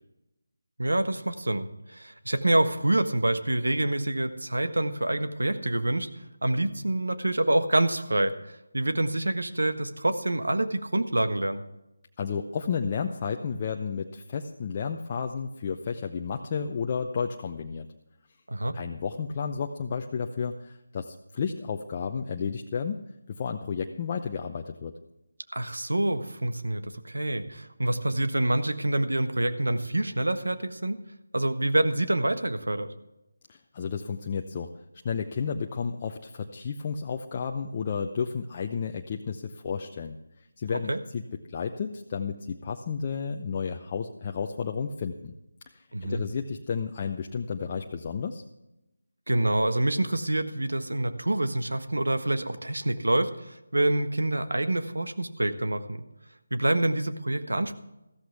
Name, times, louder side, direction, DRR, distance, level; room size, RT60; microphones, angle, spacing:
voice 1, 0.8-6.1 6.4-11.6 18.5-18.7 25.5-31.0 31.3-32.9 40.9-41.0 45.9-46.2 49.3-56.0 56.5-57.7, right 1 dB, 85° right, 9 dB, 1.4 m, -26 dB
voice 2, 12.2-17.9 18.7-23.0 23.3-24.9 33.5-34.7 35.0-40.2 40.6-41.2 41.5-45.3 45.7-48.4, left 6 dB, 30° left, 3 dB, 0.7 m, -32 dB
14.5 x 13.5 x 3.5 m, 0.92 s
figure-of-eight pair, 165°, 0 cm